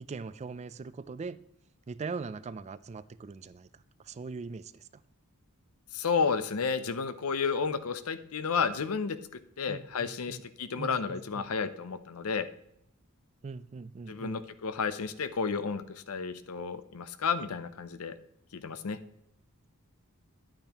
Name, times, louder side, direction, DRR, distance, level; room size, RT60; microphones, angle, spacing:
voice 1, 0.0-1.4 1.9-4.9 9.7-10.4 10.8-11.5 13.4-14.4, right 4 dB, 30° right, 16 dB, 0.3 m, -41 dB
voice 2, 5.9-9.2 9.6-12.5 14.1-18.1 18.5-19.0, left 5 dB, 75° left, 12 dB, 0.6 m, -32 dB
10.0 x 8.8 x 2.9 m, 0.78 s
head